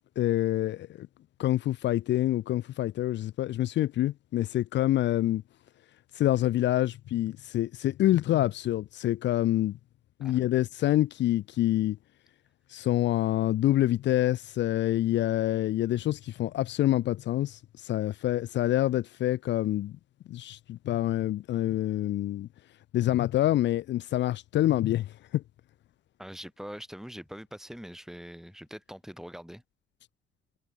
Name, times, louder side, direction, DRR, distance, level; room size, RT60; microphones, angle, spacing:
voice 1, 0.2-1.1 1.4-5.4 6.1-9.8 10.2-12.0 12.7-19.9 20.3-22.5 22.9-25.4, left 14 dB, 65° left, 0.5 m, -26 dB
voice 2, 26.2-29.6, equal, ahead, 3.3 m, -43 dB
cardioid pair, 90°, 20 cm